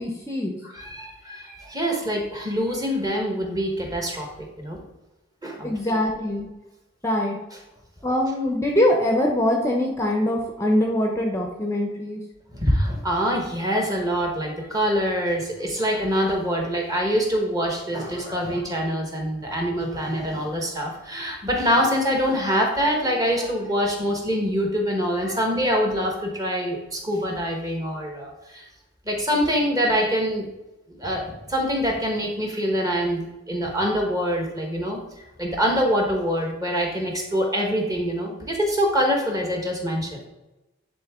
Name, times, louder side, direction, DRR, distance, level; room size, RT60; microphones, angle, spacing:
voice 1, 0.0-0.6 5.6-6.5 7.0-7.4 8.0-12.2, left 1 dB, 15° left, 1 dB, 0.7 m, -23 dB
voice 2, 0.6-4.8 5.4-6.0 12.5-28.6 29.0-30.5 30.9-35.0 35.4-40.2, equal, 20° right, 1 dB, 1.2 m, -25 dB
10.5 x 3.7 x 3.6 m, 1.0 s
head